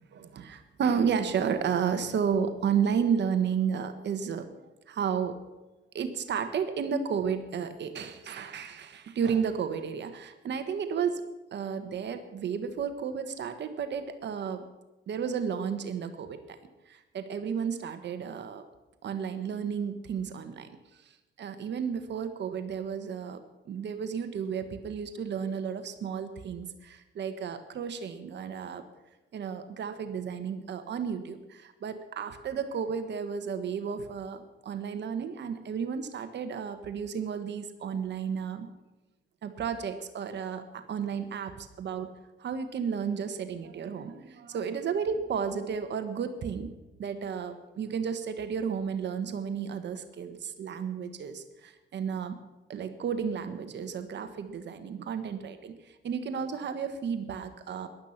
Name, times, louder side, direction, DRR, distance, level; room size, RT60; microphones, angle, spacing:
voice 1, 0.1-4.5 4.9-5.4 5.9-11.2 11.5-14.6 15.1-16.6 16.9-18.6 19.0-20.8 21.4-23.4 23.6-28.8 29.3-38.7 39.4-42.1 42.4-46.7 47.0-52.4 52.7-55.7 56.0-57.9, right 7 dB, 60° right, 8 dB, 1.4 m, -32 dB
15.5 x 11.5 x 5.9 m, 1.1 s
cardioid pair, 90°, 20 cm